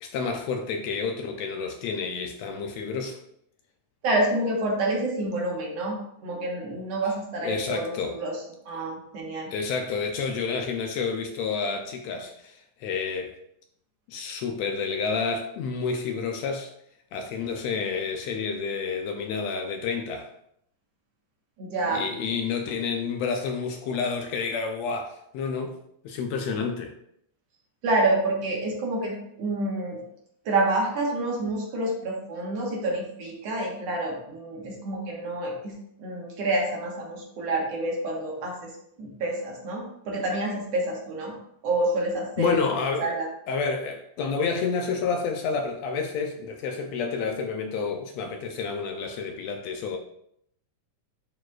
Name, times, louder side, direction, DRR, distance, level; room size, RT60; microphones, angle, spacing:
voice 1, 0.0-3.2 7.4-8.2 9.5-13.4 14.1-16.7 17.1-20.3 21.9-25.7 26.0-26.9 42.4-43.1 43.5-50.0, left 5 dB, 75° left, 4 dB, 1.7 m, -29 dB
voice 2, 4.0-9.5 21.6-22.1 27.8-30.0 30.5-35.7 36.0-38.7 39.0-41.3 41.6-42.6 43.0-43.3, right 2 dB, 65° right, -2 dB, 2.3 m, -28 dB
11.0 x 4.2 x 2.4 m, 0.73 s
omnidirectional pair, 3.3 m